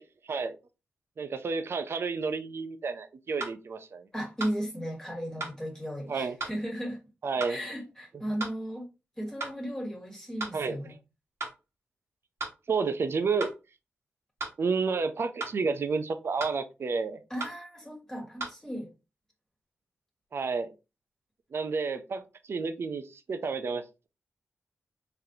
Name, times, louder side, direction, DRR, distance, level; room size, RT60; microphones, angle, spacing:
voice 1, 0.2-0.6 1.2-4.1 6.1-6.4 7.2-7.6 10.5-11.0 12.7-13.5 14.6-17.2 20.3-20.7 21.5-24.1, right 4 dB, 60° right, 0.6 m, -31 dB
sound 1, 3.4-3.6 4.4-4.6 5.4-5.6 6.4-6.6 7.4-7.6 8.4-8.6 9.4-9.6 10.4-10.6 11.4-11.6 12.4-12.6 13.4-13.6 14.4-14.6 15.4-15.6 16.4-16.6 17.4-17.6 18.4-18.5, right 3 dB, 80° right, 1.5 m, -35 dB
voice 2, 4.1-7.0 7.5-8.9 9.2-10.9 17.3-18.9, equal, 15° left, 1.6 m, -35 dB
4.0 x 3.3 x 2.8 m
cardioid pair, 70°, 5 cm